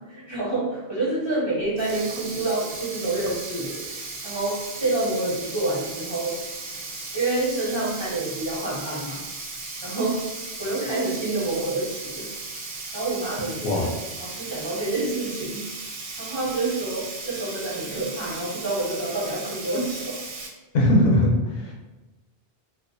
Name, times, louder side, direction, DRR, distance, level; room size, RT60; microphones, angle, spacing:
voice 1, 0.1-3.8 4.2-6.3 6.9-9.2 9.8-10.2 10.6-12.3 12.9-13.9 14.2-20.2, right 2 dB, 30° right, -9 dB, 0.7 m, -28 dB
Sink (filling or washing), 1.6-20.5, right 3 dB, 65° right, 0.7 m, -36 dB
voice 2, 20.7-21.7, left 1 dB, 65° left, -3 dB, 0.7 m, -20 dB
2.3 x 2.2 x 2.5 m, 1.1 s
omnidirectional pair, 1.1 m